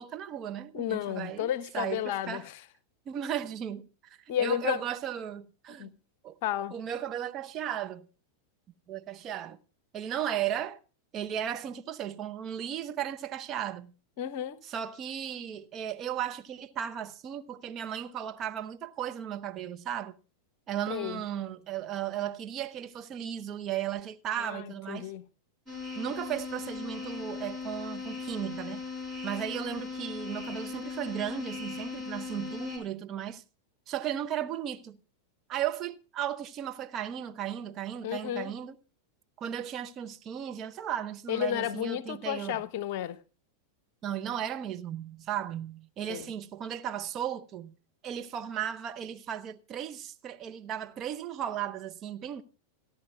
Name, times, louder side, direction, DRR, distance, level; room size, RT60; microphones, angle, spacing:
voice 1, 0.0-2.4 3.1-5.9 6.2-6.4 6.7-8.1 8.9-9.6 9.9-10.8 11.1-13.9 14.6-20.1 20.7-25.1 25.9-28.8 29.2-33.4 33.9-35.0 35.5-38.8 39.4-42.6 44.0-47.8 48.0-52.4, right 10 dB, 30° right, 0.8 m, -35 dB
voice 2, 0.7-2.6 4.3-4.8 5.8-5.9 6.4-6.7 14.2-14.6 20.9-21.2 24.4-25.2 38.0-38.5 41.3-43.2 46.1-46.3, left 11 dB, 50° left, 0.9 m, -32 dB
sound 1, 25.7-32.8, left 5 dB, 10° right, 6.3 m, -38 dB
28.0 x 10.5 x 2.3 m
figure-of-eight pair, 90°, 0 cm